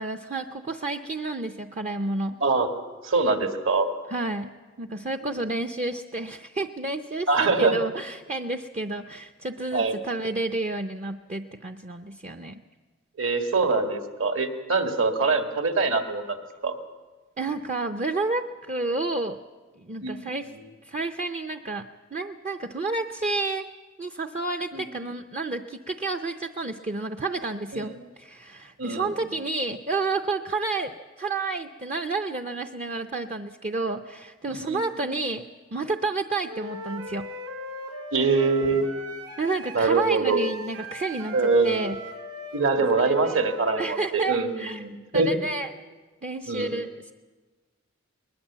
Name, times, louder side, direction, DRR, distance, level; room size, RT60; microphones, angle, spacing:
voice 1, 0.0-2.4 4.1-12.6 17.4-19.4 19.8-20.5 20.9-23.7 24.0-35.4 35.7-37.3 39.4-41.4 41.6-42.0 43.0-43.4 43.8-44.8 45.1-45.7 46.2-47.1, right 3 dB, 30° right, 6 dB, 0.6 m, -30 dB
voice 2, 2.4-3.9 7.3-7.8 9.7-9.9 13.2-16.4 16.6-16.8 20.0-20.2 24.7-25.0 27.7-27.9 28.8-29.1 34.5-34.8 38.1-38.9 39.7-40.4 41.3-41.8 42.5-45.3 46.5-46.7, right 3 dB, 65° right, 6 dB, 1.9 m, -24 dB
Wind instrument woodwind instrument, 36.5-44.0, right 1 dB, 85° right, 3.5 m, -39 dB
20.5 x 20.5 x 7.4 m, 1.3 s
head